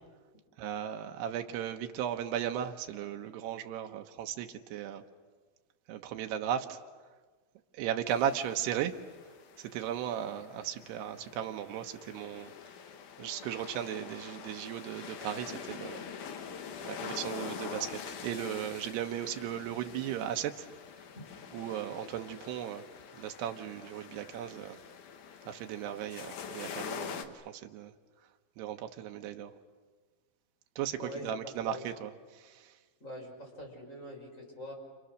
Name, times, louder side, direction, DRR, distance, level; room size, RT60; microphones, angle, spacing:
voice 1, 0.6-5.0 5.9-6.8 7.7-9.0 9.6-12.5 13.2-16.0 16.8-20.7 21.5-22.8 23.1-24.8 25.5-27.9 28.6-29.5 30.8-32.7, right 10 dB, 75° right, 5 dB, 2.6 m, -36 dB
sound 1, 8.1-27.3, left 7 dB, 85° left, 1.7 m, -45 dB
voice 2, 31.0-31.9 33.0-34.7, equal, 15° left, 0 dB, 5.4 m, -44 dB
29.5 x 28.5 x 6.5 m, 1.4 s
omnidirectional pair, 5.8 m